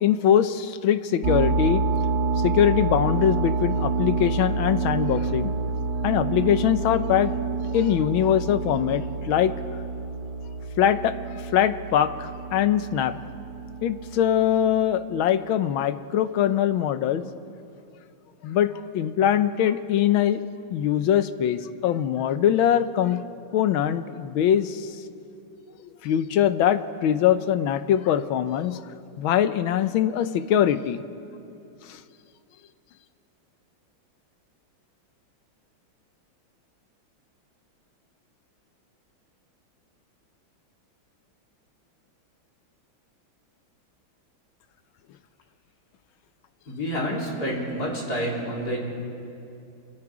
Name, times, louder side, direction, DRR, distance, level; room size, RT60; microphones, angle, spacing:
voice 1, 0.0-1.8 2.4-5.5 6.0-7.3 7.7-9.5 10.8-11.1 11.4-13.2 13.8-17.2 18.4-20.4 20.7-23.2 23.5-24.9 26.0-28.8 29.2-31.0 31.8-32.0, left 10 dB, 80° left, 12 dB, 1.6 m, -22 dB
sound 1, 1.2-14.8, right 4 dB, 55° right, 1.9 m, -28 dB
voice 2, 46.7-48.8, equal, 50° left, -3 dB, 3.9 m, -28 dB
27.5 x 25.5 x 4.9 m, 2.6 s
omnidirectional pair, 2.2 m